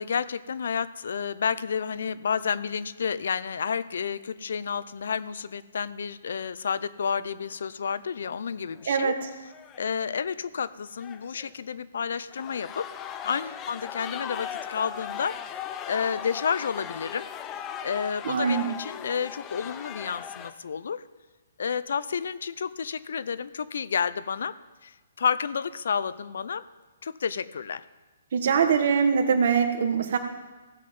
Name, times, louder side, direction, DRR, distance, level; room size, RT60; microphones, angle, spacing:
voice 1, 0.0-9.1 9.7-12.9 13.2-15.4 15.9-17.3 17.8-21.0 21.6-24.5 24.8-26.6 27.0-27.8, left 6 dB, 70° left, 16 dB, 0.5 m, -30 dB
sound 1, 8.3-8.5 8.7-8.8 9.5-9.9 11.0-11.5 12.1-20.5, left 9 dB, 20° left, 0.6 m, -38 dB
voice 2, 8.9-9.3 18.2-18.7 28.3-30.2, right 6 dB, 60° right, 6 dB, 1.5 m, -23 dB
15.5 x 7.7 x 5.4 m, 1.2 s
hypercardioid pair, 145°, 0 cm